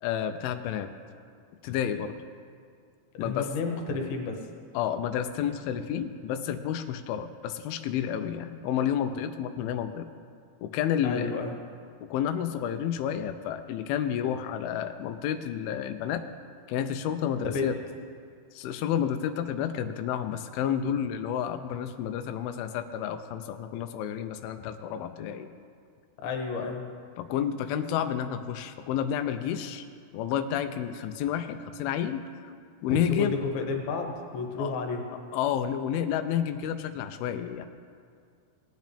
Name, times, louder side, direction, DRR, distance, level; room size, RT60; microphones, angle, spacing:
voice 1, 0.0-0.9 1.6-2.2 3.2-3.5 4.7-10.1 10.6-11.3 12.1-16.3 16.7-17.8 18.5-25.5 27.2-29.8 30.1-32.3 32.8-33.4 34.6-34.8 35.3-37.7, left 9 dB, 85° left, 8 dB, 2.1 m, -30 dB
voice 2, 3.1-4.5 11.0-11.5 17.4-17.7 26.2-26.8 32.9-35.0, left 4 dB, 70° left, 3 dB, 2.7 m, -31 dB
19.0 x 9.2 x 3.4 m, 2.2 s
omnidirectional pair, 4.8 m